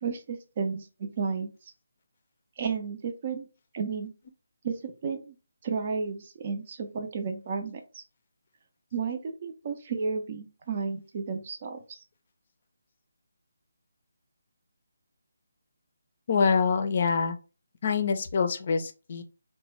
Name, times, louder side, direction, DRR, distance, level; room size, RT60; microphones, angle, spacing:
voice 1, 0.0-1.5 2.6-3.5 3.7-4.1 4.6-5.3 5.6-8.0 8.9-12.0, right 5 dB, 40° right, 5 dB, 0.5 m, -32 dB
voice 2, 16.3-17.4 17.8-19.2, left 5 dB, 45° left, 8 dB, 0.5 m, -25 dB
2.9 x 2.1 x 3.1 m, 0.33 s
figure-of-eight pair, 150°, 0 cm